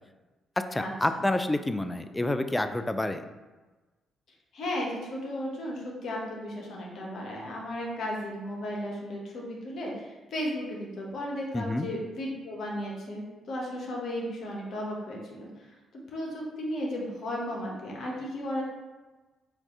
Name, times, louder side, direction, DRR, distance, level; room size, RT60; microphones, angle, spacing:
voice 1, 0.6-3.2 11.5-11.9, left 1 dB, 15° left, 9 dB, 0.3 m, -28 dB
voice 2, 4.5-15.7 16.1-18.6, equal, 65° left, -2 dB, 1.1 m, -35 dB
4.4 x 2.6 x 3.7 m, 1.2 s
hypercardioid pair, 50°, 0 cm